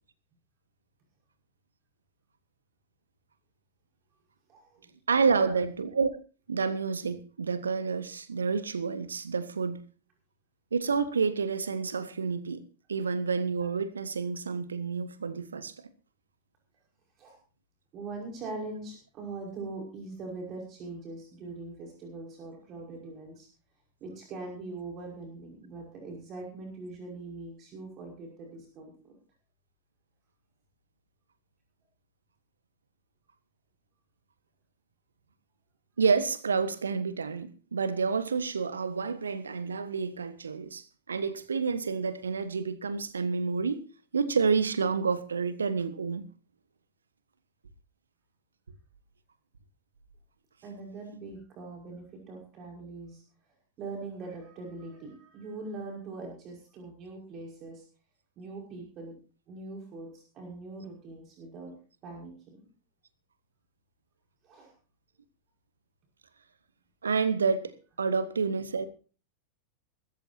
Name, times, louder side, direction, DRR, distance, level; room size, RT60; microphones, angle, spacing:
voice 1, 4.5-4.8 5.2-5.6 17.2-17.4 17.9-23.5 24.0-29.1 50.6-53.2 53.8-57.8 58.4-59.1 59.5-61.7 62.0-62.6 64.4-64.7, right 3 dB, 35° right, 5.5 m, -42 dB
voice 2, 5.1-6.1 6.5-9.8 10.7-12.6 12.9-15.7 36.0-43.9 44.1-46.2 67.0-68.9, right 5 dB, 70° right, 1.3 m, -29 dB
22.5 x 14.0 x 2.7 m
figure-of-eight pair, 90°, 0 cm